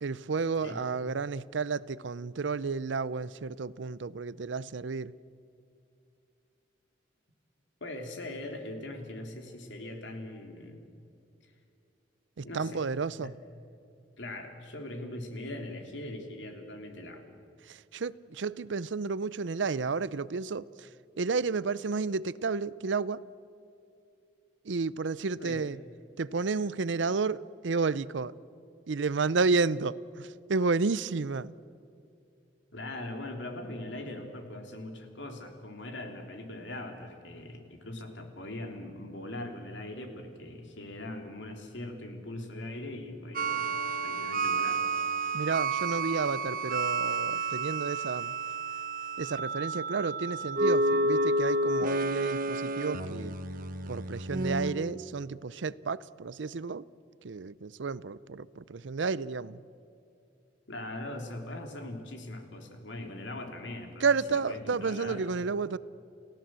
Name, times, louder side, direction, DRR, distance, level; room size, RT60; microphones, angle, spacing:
voice 1, 0.0-5.1 12.4-13.3 17.6-20.9 21.2-23.2 24.6-25.8 26.2-28.3 28.9-31.5 45.3-48.3 49.2-53.4 53.9-56.9 57.2-59.6 64.0-65.8, right 4 dB, 85° right, 0.6 m, -31 dB
voice 2, 7.8-10.8 11.4-11.5 12.4-12.8 13.2-13.3 14.2-17.3 25.4-25.6 32.7-43.7 44.0-44.8 60.7-65.2, left 1 dB, 85° left, 3.3 m, -41 dB
sound 1, 43.3-54.7, right 2 dB, 50° right, 1.1 m, -30 dB
30.0 x 16.5 x 7.6 m
head